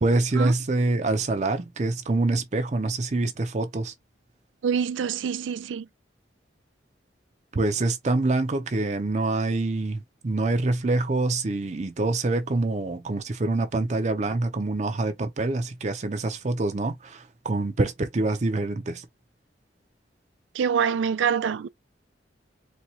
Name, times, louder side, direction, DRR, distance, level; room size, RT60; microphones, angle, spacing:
voice 1, 0.0-3.9 7.5-19.0, right 2 dB, 40° right, 0.5 m, -25 dB
voice 2, 4.6-5.9 20.5-21.7, right 7 dB, 90° right, 0.3 m, -25 dB
4.2 x 2.3 x 2.7 m
head